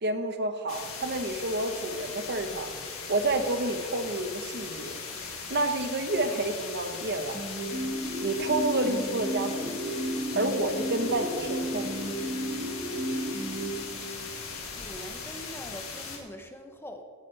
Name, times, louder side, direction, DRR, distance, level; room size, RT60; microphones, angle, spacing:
voice 1, 0.0-2.7 3.1-4.9 5.2-7.4 8.2-9.8 10.3-11.9, right 2 dB, 50° right, 7 dB, 1.0 m, -29 dB
sound 1, 0.7-16.2, left 5 dB, 75° left, 2.3 m, -39 dB
sound 2, 7.3-14.5, right 1 dB, 25° right, 1.5 m, -33 dB
voice 2, 14.7-17.0, equal, 10° left, 5 dB, 0.7 m, -43 dB
17.5 x 9.9 x 3.3 m, 2.1 s
head